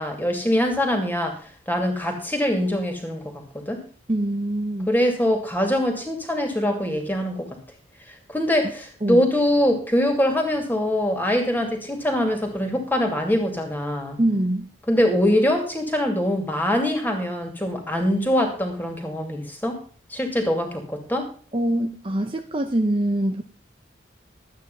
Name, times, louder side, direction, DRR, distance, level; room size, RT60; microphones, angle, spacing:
voice 1, 0.0-1.4 1.7-3.8 4.9-7.5 8.3-14.2 14.9-19.8 20.1-21.3, left 1 dB, 10° left, 4 dB, 2.4 m, -23 dB
voice 2, 4.1-4.9 9.0-9.2 14.2-14.7 21.5-23.4, right 1 dB, 30° right, 6 dB, 0.7 m, -24 dB
12.5 x 8.9 x 5.5 m, 0.42 s
head